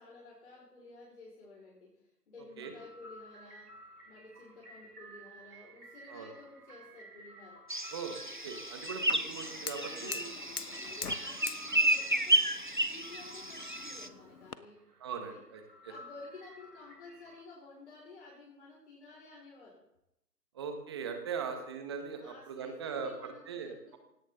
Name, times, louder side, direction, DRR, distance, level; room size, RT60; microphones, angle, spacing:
voice 1, 0.0-3.8 4.1-7.7 9.3-9.4 9.7-15.4 15.9-19.8 21.4-21.6 22.2-24.0, left 3 dB, 45° left, -4 dB, 5.3 m, -53 dB
sound 1, 2.5-17.4, right 1 dB, 65° right, 3.6 m, -54 dB
sound 2, 7.7-14.1, right 1 dB, 30° right, 0.5 m, -32 dB
voice 2, 7.9-10.3 15.0-15.6 20.5-24.0, right 6 dB, 15° right, 6 dB, 1.5 m, -40 dB
Fire, 9.1-14.6, left 6 dB, 60° left, 1.1 m, -45 dB
17.5 x 17.5 x 3.8 m, 0.84 s
figure-of-eight pair, 155°, 49 cm